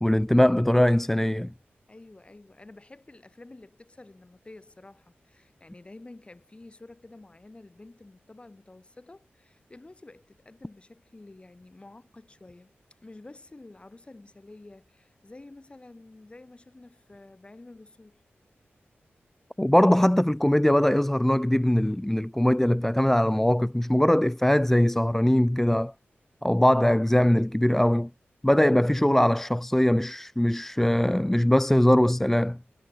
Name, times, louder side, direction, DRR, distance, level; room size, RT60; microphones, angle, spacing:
voice 1, 0.0-1.5 19.6-25.9 26.4-28.1 28.4-32.6, left 1 dB, 5° left, 0.5 m, -21 dB
voice 2, 1.9-12.7 13.0-18.2, left 2 dB, 25° left, 5.8 m, -49 dB
wide cardioid pair, 100°, 4 cm